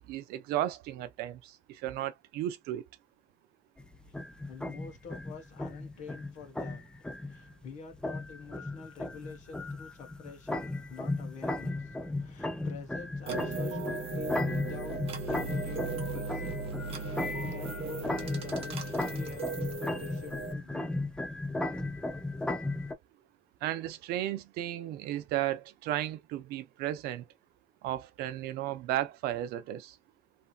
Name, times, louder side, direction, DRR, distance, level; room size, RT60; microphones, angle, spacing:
voice 1, 0.0-2.8 23.6-27.2 27.8-30.0, right 13 dB, 85° right, 0.6 m, -34 dB
sound 1, 3.8-22.9, left 2 dB, 5° left, 0.4 m, -36 dB
voice 2, 4.5-6.8 7.2-15.0 15.3-16.6 16.9-20.9, left 5 dB, 50° left, 1.2 m, -47 dB
sound 2, 13.3-20.5, right 4 dB, 40° right, 0.9 m, -38 dB
3.3 x 2.7 x 2.3 m
cardioid pair, 175°, 16 cm